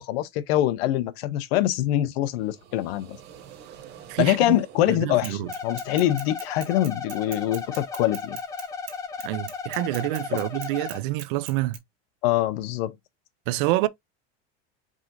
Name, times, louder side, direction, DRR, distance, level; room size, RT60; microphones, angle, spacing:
voice 1, 0.0-3.2 4.2-8.4 10.3-10.4 12.2-12.9, left 13 dB, 60° left, 0.6 m, -24 dB
sound 1, 2.1-6.2, right 9 dB, 30° right, 0.9 m, -48 dB
voice 2, 4.1-4.6 4.9-5.5 9.2-11.8 13.5-13.9, right 16 dB, 50° right, 0.4 m, -27 dB
Bicycle / Mechanisms, 5.2-11.8, right 12 dB, 70° right, 1.7 m, -41 dB
sound 2, 5.5-11.0, left 5 dB, 10° left, 0.4 m, -35 dB
4.9 x 2.6 x 3.8 m
cardioid pair, 180°, 34 cm